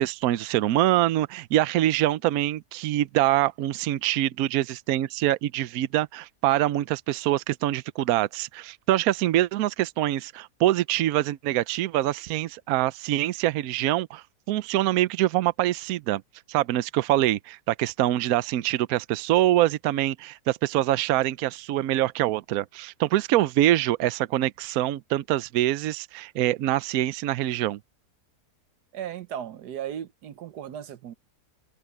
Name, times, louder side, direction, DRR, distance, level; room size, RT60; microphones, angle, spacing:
voice 1, 0.0-16.2 16.5-27.8, right 14 dB, 70° right, 1.0 m, -24 dB
voice 2, 28.9-31.1, right 10 dB, 90° right, 1.5 m, -36 dB
omnidirectional pair, 1.7 m